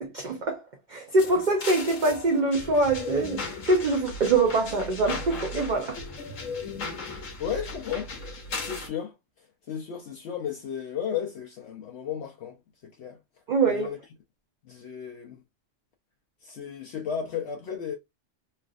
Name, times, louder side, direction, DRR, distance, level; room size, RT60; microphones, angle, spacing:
voice 1, 0.0-0.6 0.9-6.0 13.5-13.9, right 3 dB, 45° right, 0.7 m, -24 dB
sound 1, 1.2-8.9, left 3 dB, 85° left, 1.2 m, -37 dB
voice 2, 7.4-8.1 8.5-9.1 9.7-12.6 13.0-13.2 13.7-14.0 14.7-15.4 16.4-18.0, left 8 dB, 65° left, 0.8 m, -34 dB
3.3 x 2.5 x 2.3 m
omnidirectional pair, 1.3 m